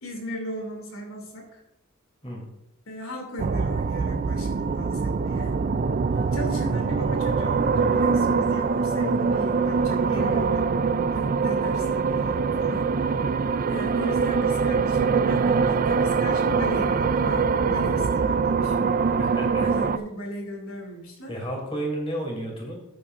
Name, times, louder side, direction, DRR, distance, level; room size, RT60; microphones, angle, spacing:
voice 1, 0.0-1.6 2.9-5.6 6.3-10.7 11.1-13.3 13.7-19.0 19.6-21.3, equal, 85° left, 1 dB, 2.7 m, -36 dB
sound 1, 3.4-20.0, right 5 dB, 40° right, 0.4 m, -23 dB
sound 2, 6.1-11.0, right 2 dB, 70° right, 1.7 m, -43 dB
voice 2, 10.0-10.5 19.2-19.7 21.3-22.8, right 1 dB, 25° left, -1 dB, 2.8 m, -32 dB
13.5 x 8.7 x 2.5 m, 0.83 s
head